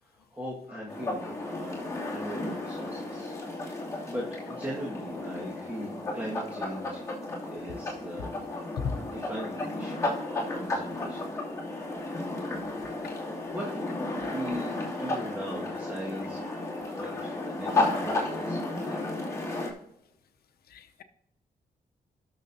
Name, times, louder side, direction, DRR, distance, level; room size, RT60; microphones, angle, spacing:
voice 1, 0.0-3.4 3.6-7.1 7.4-8.3 9.0-11.3 13.3-13.8 14.3-19.2, equal, 10° right, -4 dB, 1.6 m, -40 dB
sound 1, 0.9-19.7, left 2 dB, 20° left, 2.5 m, -33 dB
voice 2, 20.7-21.0, left 6 dB, 85° left, 8 dB, 0.7 m, -34 dB
18.0 x 6.4 x 2.7 m, 0.85 s
cardioid pair, 115°, 16 cm